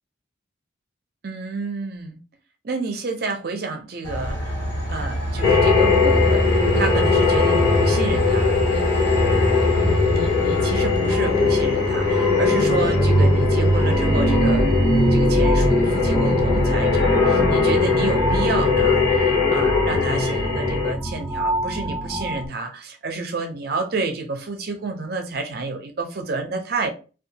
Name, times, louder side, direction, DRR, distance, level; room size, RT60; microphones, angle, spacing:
voice 1, 1.2-2.2 2.6-9.4 9.7-14.7 15.1-26.9, right 3 dB, 55° right, 0.5 m, -30 dB
Train, 4.0-19.2, equal, 55° left, 1.3 m, -28 dB
sound 1, 5.4-20.9, left 5 dB, 85° left, 0.7 m, -21 dB
sound 2, 11.1-22.5, right 1 dB, 5° left, 0.5 m, -22 dB
2.7 x 2.3 x 2.7 m
head